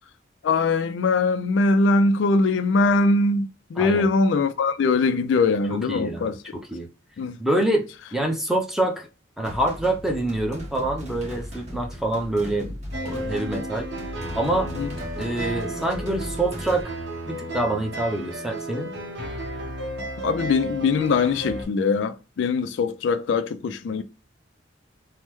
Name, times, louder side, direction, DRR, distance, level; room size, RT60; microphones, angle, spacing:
voice 1, 0.4-6.4 7.2-7.4 14.8-14.9 20.2-24.0, left 3 dB, 85° left, 0.3 m, -22 dB
voice 2, 3.8-4.1 5.7-6.9 7.4-9.1 9.4-12.7 13.0-13.9 14.3-14.7 15.2-16.8 17.3-18.9, right 1 dB, ahead, 0.5 m, -26 dB
sound 1, 9.4-16.8, equal, 40° right, 1.2 m, -37 dB
sound 2, 12.9-21.6, right 1 dB, 65° right, 0.8 m, -33 dB
3.3 x 2.0 x 3.0 m
head